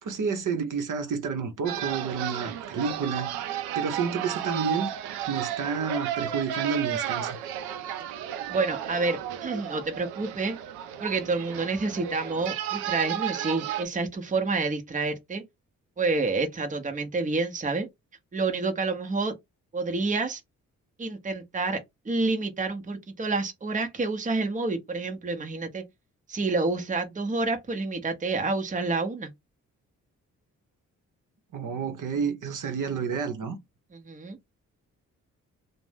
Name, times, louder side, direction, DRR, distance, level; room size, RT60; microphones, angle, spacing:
voice 1, 0.0-3.3 3.7-4.9 5.3-7.4 31.5-33.6, right 5 dB, 55° right, 0.8 m, -30 dB
sound 1, 1.7-13.9, right 11 dB, 85° right, 0.5 m, -33 dB
voice 2, 8.5-10.6 11.0-15.4 16.0-17.9 18.3-19.3 19.7-20.4 21.0-25.8 26.3-29.3 33.9-34.4, right 3 dB, 20° right, 0.8 m, -28 dB
2.5 x 2.1 x 3.4 m
hypercardioid pair, 40°, 37 cm